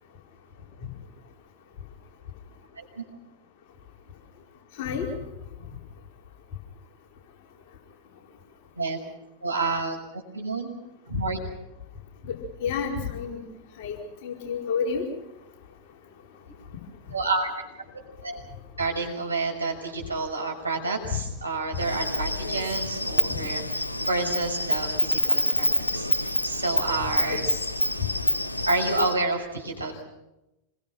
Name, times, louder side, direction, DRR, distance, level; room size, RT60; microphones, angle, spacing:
voice 1, 9.4-10.7 11.1-11.4 17.1-17.6 18.2-18.4 18.8-27.5 28.7-30.0, right 3 dB, 75° right, 1 dB, 6.2 m, -29 dB
voice 2, 12.6-13.4 13.8-14.0 14.2-15.0 22.4-22.5 27.3-27.5, left 6 dB, 50° left, 1 dB, 4.9 m, -29 dB
Insect, 21.7-29.1, left 1 dB, 85° left, 1.1 m, -27 dB
27.0 x 22.0 x 5.8 m, 0.91 s
figure-of-eight pair, 90°, 0 cm